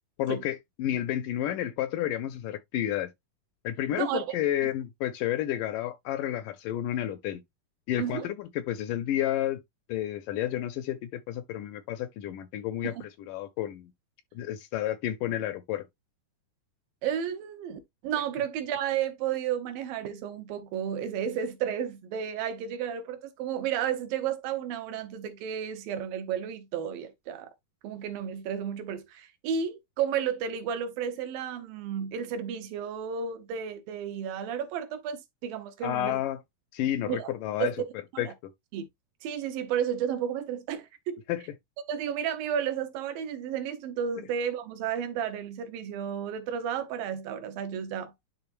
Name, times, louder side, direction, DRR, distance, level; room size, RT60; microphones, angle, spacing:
voice 1, 0.2-3.1 3.6-7.4 7.9-9.6 9.9-13.9 14.4-15.9 35.8-36.4 36.7-37.7 38.2-38.5 41.3-41.4, left 12 dB, 80° left, 2.0 m, -31 dB
voice 2, 3.9-4.4 4.6-4.7 8.0-8.3 12.8-13.1 17.0-27.5 27.8-36.2 37.1-37.3 37.6-37.7 38.1-38.3 38.7-38.8 39.2-41.2 41.9-48.1, right 8 dB, 75° right, 2.6 m, -32 dB
10.5 x 3.7 x 2.6 m
omnidirectional pair, 4.1 m